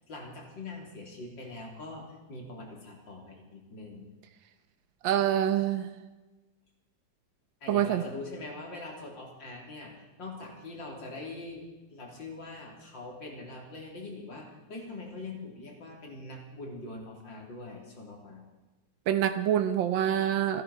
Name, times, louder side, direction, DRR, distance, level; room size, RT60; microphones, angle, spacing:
voice 1, 0.0-4.0 7.6-11.6 11.9-18.4, left 2 dB, 75° left, 0 dB, 4.1 m, -43 dB
voice 2, 5.0-6.0 7.7-8.0 19.1-20.6, right 10 dB, 80° right, 9 dB, 1.6 m, -26 dB
28.5 x 11.0 x 4.4 m, 1.2 s
omnidirectional pair, 2.0 m